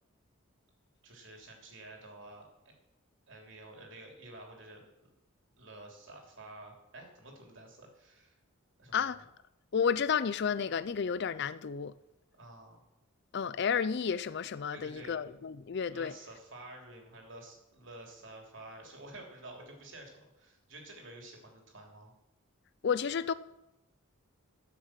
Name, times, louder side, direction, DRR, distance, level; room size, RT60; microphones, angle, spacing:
voice 1, 1.0-2.5 3.3-5.1 5.6-8.4 8.8-9.2 12.3-12.8 14.7-15.2 15.9-22.1, right 2 dB, 55° right, 3.2 m, -50 dB
voice 2, 8.9-9.2 9.7-12.0 13.3-16.1 22.8-23.3, left 6 dB, 50° left, 0.4 m, -31 dB
13.0 x 6.5 x 7.5 m
head